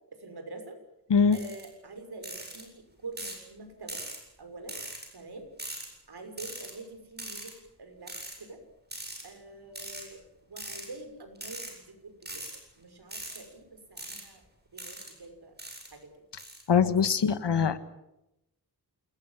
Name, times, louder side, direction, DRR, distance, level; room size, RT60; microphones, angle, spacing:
voice 1, 0.2-0.8 1.3-4.0 4.4-4.8 5.1-5.5 6.1-8.6 9.2-12.5 12.8-14.4 14.7-15.6 15.9-16.1 16.7-17.0, right 2 dB, 70° right, 6 dB, 6.0 m, -46 dB
sound 1, 1.3-1.7 2.2-2.6 3.2-3.4 3.9-4.2 4.7-5.1 5.6-5.9 6.4-6.7 7.2-7.5 8.1-8.4 8.9-9.2 9.8-10.1 10.6-10.9 11.4-11.7 12.2-12.6 13.1-13.4 14.0-14.2 14.8-15.1 15.6-15.9 16.4-16.6, right 1 dB, 25° right, 8.0 m, -40 dB
voice 2, 16.7-17.8, left 6 dB, 85° left, 12 dB, 1.7 m, -23 dB
28.0 x 20.0 x 7.4 m, 0.86 s
wide cardioid pair, 115°, 41 cm